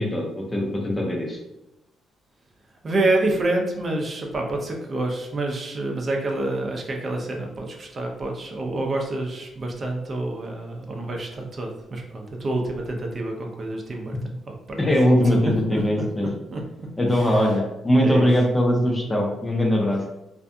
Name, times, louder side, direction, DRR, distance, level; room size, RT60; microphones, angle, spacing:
voice 1, 0.0-1.4 14.8-16.4 17.0-20.0, equal, 15° left, 0 dB, 0.5 m, -21 dB
voice 2, 2.8-14.8 15.2-15.4 15.7-15.8 16.5-16.6 17.1-17.5 18.0-18.3, right 2 dB, 40° right, 1 dB, 0.5 m, -28 dB
2.6 x 2.5 x 2.2 m, 0.92 s
cardioid pair, 90°, 0 cm